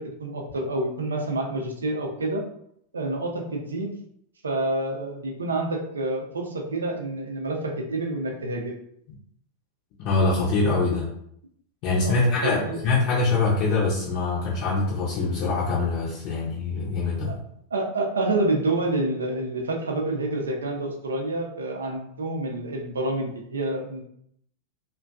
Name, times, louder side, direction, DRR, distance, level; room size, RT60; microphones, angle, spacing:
voice 1, 0.0-2.4 2.9-3.9 4.4-8.8 12.0-12.8 17.3-17.4 17.7-24.0, right 2 dB, 70° right, 1 dB, 0.5 m, -28 dB
voice 2, 10.0-11.1 11.8-17.4, left 3 dB, 40° left, -6 dB, 0.6 m, -24 dB
2.5 x 2.2 x 2.3 m, 0.71 s
figure-of-eight pair, 90°, 0 cm